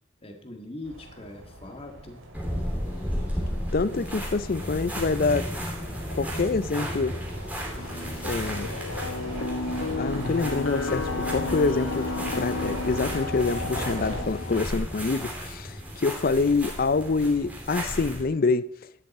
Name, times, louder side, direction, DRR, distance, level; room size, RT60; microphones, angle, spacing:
voice 1, 0.2-2.3, left 2 dB, 25° left, 1.7 m, -41 dB
sound 1, 0.8-14.2, right 1 dB, 70° right, 2.3 m, -39 dB
sound 2, 2.3-18.2, equal, 5° right, 2.8 m, -34 dB
voice 2, 3.7-5.5 6.2-7.1 8.2-8.7 10.0-12.1 12.3-18.7, left 4 dB, 45° left, 0.5 m, -26 dB
sound 3, 7.8-14.6, left 3 dB, 85° left, 1.0 m, -32 dB
12.5 x 10.0 x 4.2 m
head